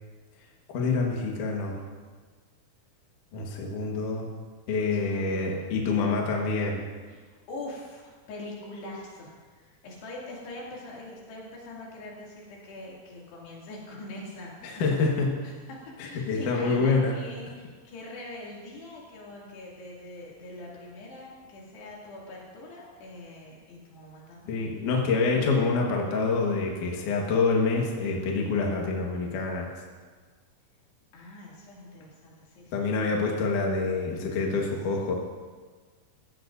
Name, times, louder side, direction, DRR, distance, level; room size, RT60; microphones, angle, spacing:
voice 1, 0.7-1.8 3.3-4.3 4.7-6.8 14.6-15.4 16.0-17.2 24.5-29.7 32.7-35.1, left 4 dB, 60° left, -1 dB, 2.7 m, -26 dB
voice 2, 4.9-5.7 7.1-14.5 15.4-24.8 31.1-32.7, left 2 dB, 80° left, -4 dB, 4.7 m, -43 dB
16.0 x 15.5 x 2.6 m, 1.5 s
omnidirectional pair, 4.7 m